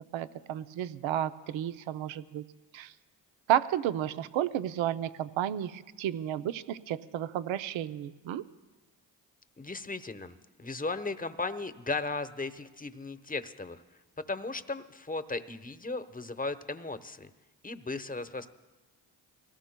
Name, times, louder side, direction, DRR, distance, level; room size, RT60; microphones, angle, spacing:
voice 1, 0.1-2.4 2.7-2.9 3.5-8.4, right 11 dB, 75° right, 13 dB, 0.7 m, -32 dB
voice 2, 9.6-13.8 14.2-17.3 17.6-18.5, left 3 dB, 20° left, 10 dB, 1.0 m, -36 dB
24.0 x 18.0 x 2.2 m, 1.2 s
supercardioid pair, 45°, 46 cm